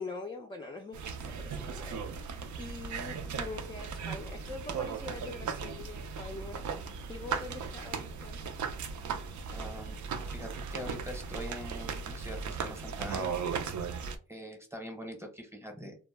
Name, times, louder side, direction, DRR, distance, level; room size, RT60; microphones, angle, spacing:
voice 1, 0.0-6.6 7.1-8.4, left 3 dB, 15° left, 3 dB, 0.4 m, -44 dB
sound 1, 0.9-14.2, right 5 dB, 70° right, 0.5 m, -37 dB
voice 2, 9.5-10.0 10.3-13.3 14.3-16.0, equal, 10° right, 4 dB, 0.8 m, -43 dB
2.1 x 2.0 x 3.2 m, 0.37 s
wide cardioid pair, 100°, 30 cm